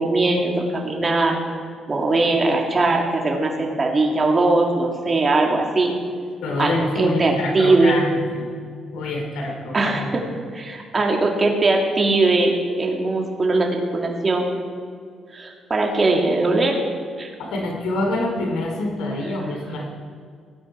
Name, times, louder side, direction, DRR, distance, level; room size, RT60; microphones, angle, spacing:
voice 1, 0.0-1.4 1.9-5.9 6.6-8.0 9.7-10.2 10.5-14.5 15.3-16.8 17.2-17.3, right 2 dB, 35° right, 1 dB, 2.3 m, -20 dB
voice 2, 6.4-8.5 8.9-10.1 17.4-20.0, left 2 dB, 85° left, 1 dB, 2.7 m, -26 dB
18.5 x 9.7 x 4.5 m, 2.2 s
cardioid pair, 90°, 0 cm